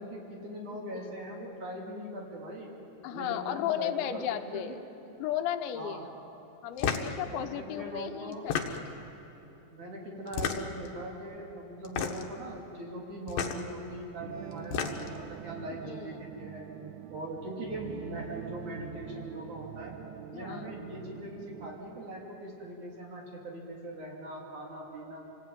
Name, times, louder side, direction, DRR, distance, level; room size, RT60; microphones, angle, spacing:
voice 1, 0.0-2.7 3.1-4.6 5.7-6.0 7.3-8.5 9.7-16.7 17.1-20.0 20.3-25.2, right 1 dB, 45° right, -2 dB, 4.6 m, -41 dB
voice 2, 3.0-4.8 5.2-6.1 6.6-8.8 15.8-16.2 20.3-20.7, left 10 dB, 85° left, 7 dB, 3.3 m, -34 dB
sound 1, 6.8-7.1 8.3-9.0 10.3-10.9 11.8-12.3 13.3-13.6 14.5-15.2, left 7 dB, 65° left, 2.6 m, -32 dB
sound 2, 14.2-21.8, right 10 dB, 80° right, 2.8 m, -45 dB
27.5 x 18.5 x 9.2 m, 3.0 s
omnidirectional pair, 5.1 m